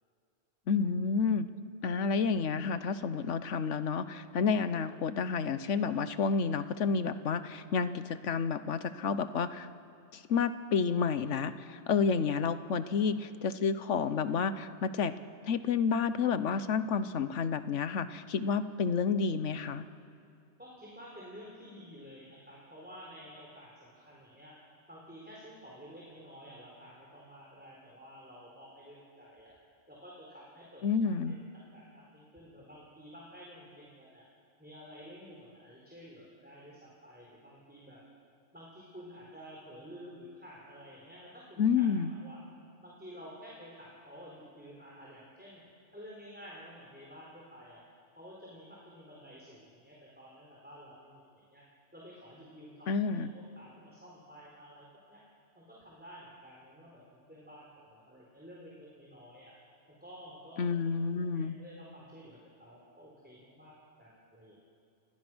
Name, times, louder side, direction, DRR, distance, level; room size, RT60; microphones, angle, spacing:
voice 1, 0.7-1.5 1.8-9.7 10.1-15.1 15.4-19.8 30.8-31.4 41.6-42.1 52.9-53.3 60.6-61.6, left 5 dB, 70° left, 12 dB, 1.2 m, -30 dB
voice 2, 20.6-24.5 24.9-29.5 29.9-31.2 31.7-34.2 34.6-38.0 38.5-41.7 42.1-42.4 42.8-45.6 45.9-47.8 48.2-51.6 51.9-55.2 55.6-57.0 57.3-59.5 59.9-60.8 61.0-64.6, equal, 5° right, -5 dB, 4.1 m, -51 dB
28.0 x 22.0 x 6.2 m, 2.4 s
omnidirectional pair, 1.3 m